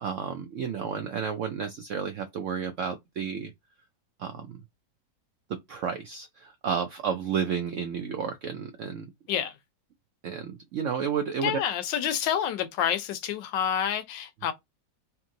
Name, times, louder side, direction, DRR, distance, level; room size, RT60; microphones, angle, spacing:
voice 1, 0.0-3.5 4.2-4.6 5.7-9.1 10.2-11.6, right 7 dB, 90° right, 0.6 m, -31 dB
voice 2, 11.4-14.5, left 9 dB, 85° left, 1.3 m, -28 dB
3.5 x 3.0 x 3.7 m
omnidirectional pair, 1.9 m